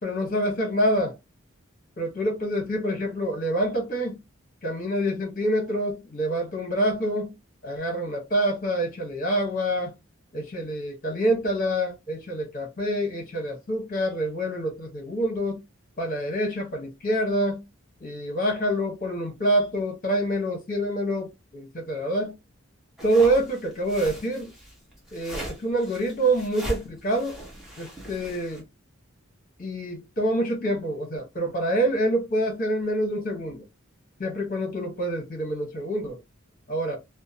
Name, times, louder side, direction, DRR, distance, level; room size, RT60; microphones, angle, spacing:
voice 1, 0.0-1.2 2.0-4.2 4.6-7.3 7.6-9.9 10.3-15.6 16.0-17.6 18.0-22.4 23.0-24.5 25.1-27.4 27.8-28.6 29.6-33.6 34.2-36.2 36.7-37.0, right 1 dB, 40° left, 1.0 m, -26 dB
sound 1, 23.0-28.6, equal, ahead, 0.9 m, -39 dB
2.7 x 2.1 x 2.6 m
head